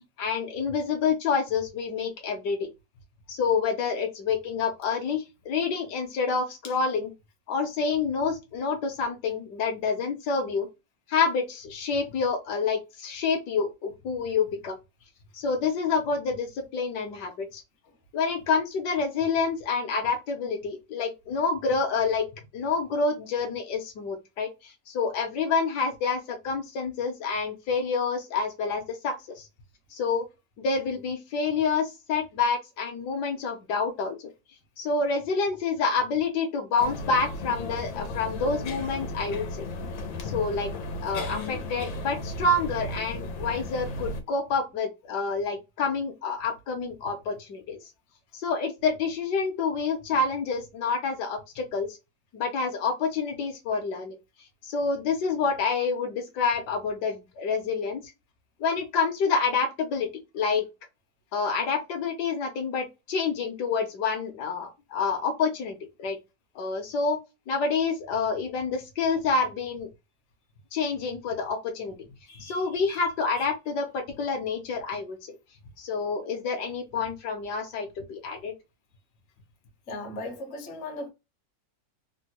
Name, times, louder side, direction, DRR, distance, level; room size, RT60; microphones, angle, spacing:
voice 1, 0.2-2.7 3.3-7.1 7.5-10.7 11.1-14.8 15.3-17.6 18.1-22.3 22.5-29.5 29.9-30.2 30.6-34.2 34.8-39.5 40.2-40.7 41.0-47.8 48.3-51.9 52.3-54.2 54.6-58.0 58.6-60.1 60.3-60.6 61.3-66.2 66.5-67.2 67.5-69.9 70.7-71.9 72.4-75.2 75.8-78.5, left 4 dB, 70° left, 1.3 m, -28 dB
sound 1, 36.8-44.2, left 2 dB, 90° left, 1.4 m, -35 dB
voice 2, 72.3-73.0 73.4-73.5 79.9-81.1, left 2 dB, 50° left, 0.9 m, -38 dB
3.6 x 2.1 x 2.9 m
omnidirectional pair, 2.0 m